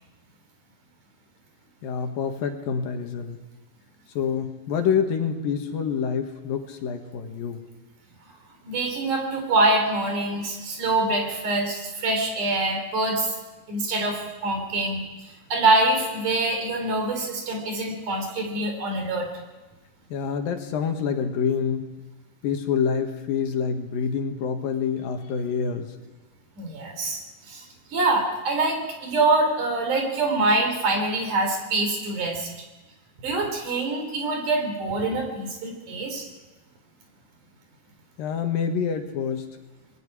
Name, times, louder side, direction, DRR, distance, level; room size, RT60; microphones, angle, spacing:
voice 1, 1.8-3.4 4.2-7.6 20.1-21.9 22.4-25.9 38.2-39.5, left 6 dB, 75° left, 5 dB, 3.3 m, -27 dB
voice 2, 8.6-13.3 13.7-19.3 26.6-27.6 27.9-32.5 33.2-36.3, right 2 dB, 60° right, 3 dB, 5.1 m, -25 dB
27.0 x 20.5 x 4.9 m, 1.2 s
omnidirectional pair, 4.1 m